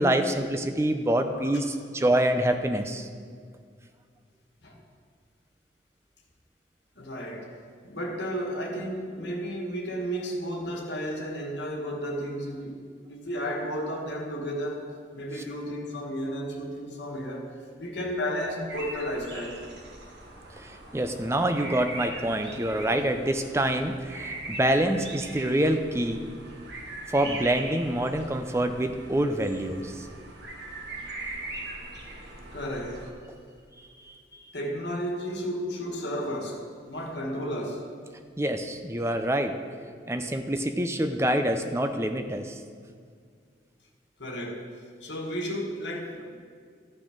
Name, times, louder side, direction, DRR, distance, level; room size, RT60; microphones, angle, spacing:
voice 1, 0.0-3.1 15.4-15.5 20.6-26.3 27.1-30.1 33.3-33.4 38.4-39.6 40.1-42.6, right 1 dB, 15° right, 0.5 m, -26 dB
voice 2, 6.9-7.5 7.8-12.8 13.1-14.9 15.1-19.6 32.5-33.1 34.5-37.9 44.2-44.7 45.0-46.4, equal, 75° left, 1.6 m, -33 dB
sound 1, 18.7-33.1, right 2 dB, 70° right, 1.3 m, -41 dB
14.0 x 6.2 x 5.1 m
head